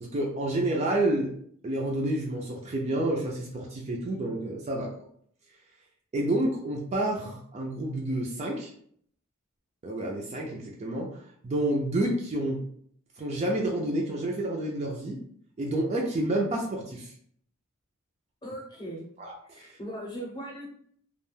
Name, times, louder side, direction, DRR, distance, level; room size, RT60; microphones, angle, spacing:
voice 1, 0.0-1.3 1.6-4.9 6.1-8.7 9.8-11.1 11.4-12.6 13.2-15.2 15.6-17.1 19.2-19.7, right 1 dB, 30° right, -1 dB, 0.3 m, -29 dB
voice 2, 18.4-19.0 19.5-20.7, right 1 dB, 20° left, -2 dB, 0.7 m, -38 dB
2.3 x 2.1 x 3.2 m, 0.63 s
head